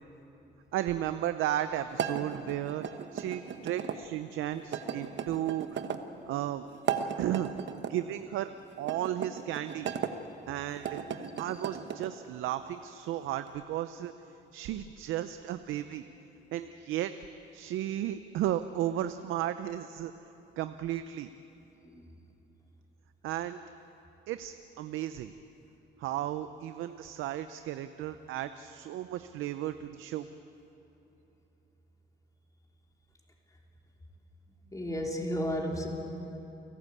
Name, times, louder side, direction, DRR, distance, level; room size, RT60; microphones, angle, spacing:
voice 1, 0.7-2.9 3.1-5.8 6.3-6.7 7.2-7.5 7.9-8.5 8.8-9.9 10.5-11.0 11.4-14.1 14.5-16.0 16.5-17.1 17.5-20.1 20.6-21.3 23.2-23.6 24.3-25.3 26.0-30.3, right 12 dB, 90° right, 11 dB, 0.6 m, -34 dB
sound 1, 1.9-4.0 4.7-6.0 6.7-7.9 8.8-10.1 10.7-12.1, right 7 dB, 65° right, 1.2 m, -36 dB
voice 2, 34.7-35.9, equal, 15° left, 0 dB, 3.5 m, -32 dB
29.5 x 12.0 x 8.4 m, 3.0 s
cardioid pair, 90°, 20 cm